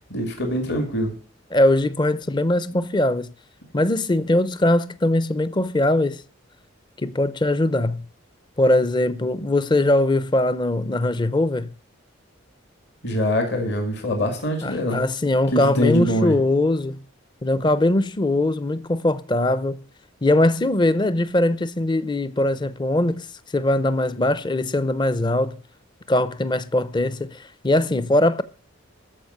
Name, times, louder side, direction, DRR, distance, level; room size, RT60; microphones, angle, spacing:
voice 1, 0.1-1.1 13.0-15.0 15.5-16.4, equal, 55° left, 2.2 m, -23 dB
voice 2, 1.5-3.3 3.7-6.2 7.0-8.1 8.6-11.7 14.6-17.0 17.4-19.8 20.2-23.3 23.5-25.6 26.1-28.4, left 1 dB, 25° left, 0.5 m, -21 dB
14.0 x 5.1 x 7.9 m
head